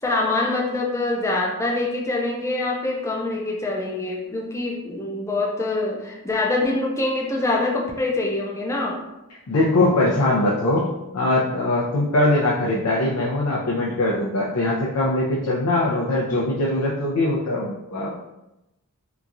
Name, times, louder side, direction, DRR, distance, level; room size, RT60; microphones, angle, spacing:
voice 1, 0.0-9.0, left 2 dB, 15° left, -1 dB, 0.4 m, -25 dB
voice 2, 9.5-10.9 11.1-18.2, left 2 dB, 85° left, -4 dB, 0.5 m, -21 dB
2.9 x 2.3 x 2.5 m, 0.92 s
head